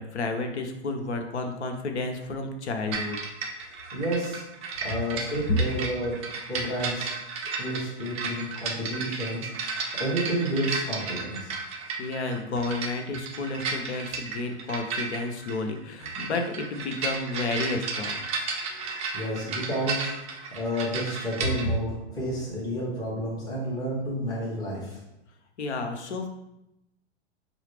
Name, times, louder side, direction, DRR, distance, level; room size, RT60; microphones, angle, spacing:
voice 1, 0.0-3.2 11.7-18.2 25.6-26.3, left 3 dB, 85° left, 4 dB, 0.8 m, -31 dB
sound 1, 2.9-21.7, right 4 dB, 20° right, 0.4 m, -34 dB
voice 2, 3.9-4.4 4.8-6.1 6.5-7.1 7.6-9.5 9.9-11.5 18.7-20.1 20.5-25.0, equal, 10° left, -9 dB, 1.5 m, -30 dB
5.7 x 2.3 x 3.4 m, 0.89 s
hypercardioid pair, 130°, 33 cm